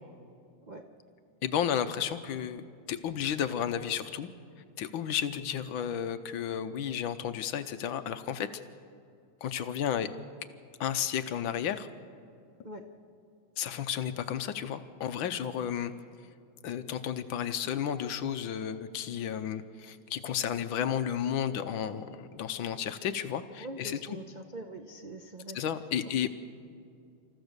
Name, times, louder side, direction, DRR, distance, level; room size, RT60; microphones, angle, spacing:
voice 1, 1.4-4.3 4.8-8.5 9.4-10.1 10.8-11.9 13.6-15.9 16.6-24.2 25.5-26.3, left 9 dB, 70° left, 10 dB, 1.4 m, -32 dB
voice 2, 23.6-25.6, right 2 dB, 80° right, 3 dB, 0.4 m, -43 dB
27.5 x 14.5 x 6.7 m, 2.4 s
omnidirectional pair, 2.4 m